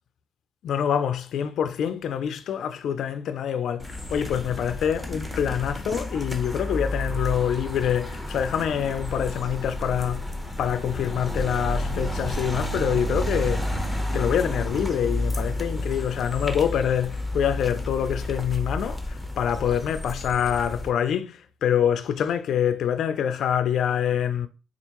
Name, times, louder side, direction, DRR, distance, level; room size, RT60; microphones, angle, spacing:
voice 1, 0.6-10.2 10.6-13.8 14.1-24.5, left 9 dB, 70° left, 0.3 m, -26 dB
sound 1, 3.8-20.9, left 1 dB, 5° right, 0.8 m, -31 dB
4.5 x 2.4 x 2.9 m
cardioid pair, 90°, 0 cm